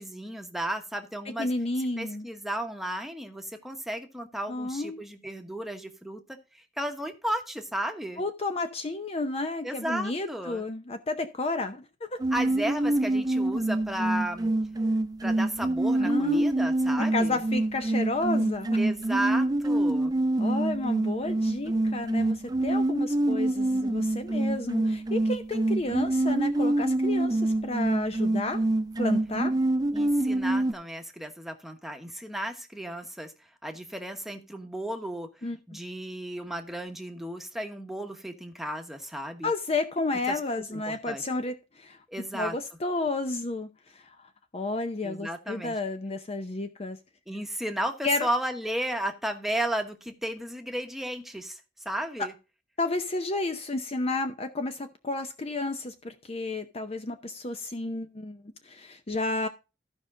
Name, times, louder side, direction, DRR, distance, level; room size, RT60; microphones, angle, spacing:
voice 1, 0.0-1.5 2.0-6.2 6.5-8.2 9.6-10.6 12.3-14.5 15.2-17.4 18.8-20.1 29.9-33.3 33.6-35.3 35.7-39.5 40.3-40.4 40.7-41.2 42.1-42.5 45.0-45.7 47.3-52.3, right 1 dB, ahead, 1.1 m, -34 dB
voice 2, 1.4-2.3 4.5-5.0 8.2-12.2 16.0-16.6 17.0-18.8 20.4-28.6 29.0-29.6 35.4-35.8 39.4-42.0 42.3-44.2 44.5-47.0 48.0-48.3 52.8-59.5, left 2 dB, 35° left, 0.7 m, -31 dB
sound 1, 12.2-30.7, right 1 dB, 20° right, 0.4 m, -26 dB
14.0 x 5.2 x 3.8 m
head